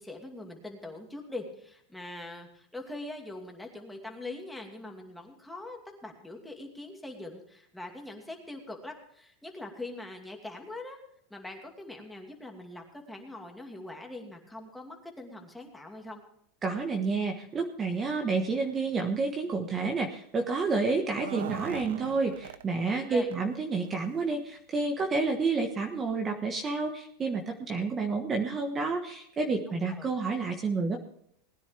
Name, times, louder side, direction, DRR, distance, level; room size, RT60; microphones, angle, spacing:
voice 1, 0.0-11.0 11.3-16.2 22.9-23.3 29.7-30.1, left 2 dB, 5° left, 1 dB, 2.5 m, -42 dB
voice 2, 16.6-31.0, right 4 dB, 25° right, 3 dB, 1.4 m, -29 dB
sound 1, 21.0-23.0 23.3-23.4 23.8-24.0 24.9-25.0 25.3-25.4, right 10 dB, 90° right, 0.8 m, -40 dB
20.0 x 10.0 x 3.5 m, 0.69 s
supercardioid pair, 135°, 0 cm